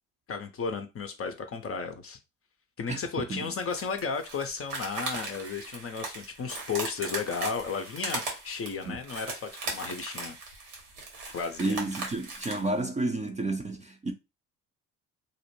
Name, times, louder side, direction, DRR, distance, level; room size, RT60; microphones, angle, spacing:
voice 1, 0.3-2.2 2.8-10.4 11.3-11.8, left 5 dB, 35° left, 0.5 m, -34 dB
sound 1, 3.6-12.7, right 3 dB, 80° right, 1.2 m, -38 dB
voice 2, 11.6-14.1, right 2 dB, 15° right, 0.5 m, -31 dB
2.5 x 2.1 x 3.0 m
hypercardioid pair, 55°, 43 cm